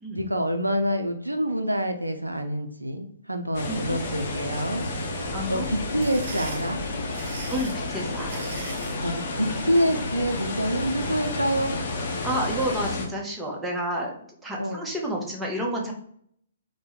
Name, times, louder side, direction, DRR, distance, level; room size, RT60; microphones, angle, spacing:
voice 1, 0.1-4.8 5.2-6.8 9.0-11.8 14.6-14.8, equal, 90° right, 6 dB, 0.4 m, -27 dB
sound 1, 3.5-13.1, left 2 dB, 50° left, 0.6 m, -31 dB
voice 2, 3.7-4.0 5.3-5.7 7.5-8.4 12.2-14.1 14.4-15.9, right 1 dB, 5° right, -2 dB, 0.7 m, -30 dB
sound 2, 5.7-9.0, right 4 dB, 50° right, 0.6 m, -40 dB
3.3 x 2.1 x 3.0 m, 0.65 s
figure-of-eight pair, 125°, 0 cm